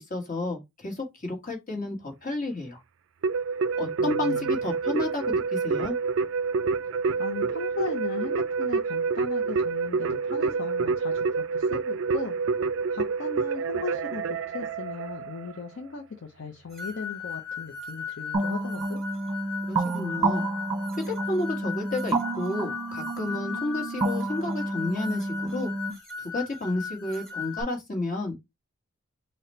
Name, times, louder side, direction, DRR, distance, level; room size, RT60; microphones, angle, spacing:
voice 1, 0.0-2.8 3.8-5.9 19.7-20.5 21.1-25.7 26.2-28.4, left 2 dB, 35° left, 1.3 m, -31 dB
Keyboard (musical), 3.2-15.7, right 5 dB, 60° right, 0.3 m, -28 dB
voice 2, 4.0-4.7 7.2-12.4 12.9-19.0, left 4 dB, 55° left, 0.5 m, -37 dB
sound 1, 16.8-27.6, left 5 dB, ahead, 1.3 m, -38 dB
sound 2, 18.3-25.9, right 2 dB, 25° right, 0.8 m, -30 dB
4.0 x 2.1 x 4.2 m
head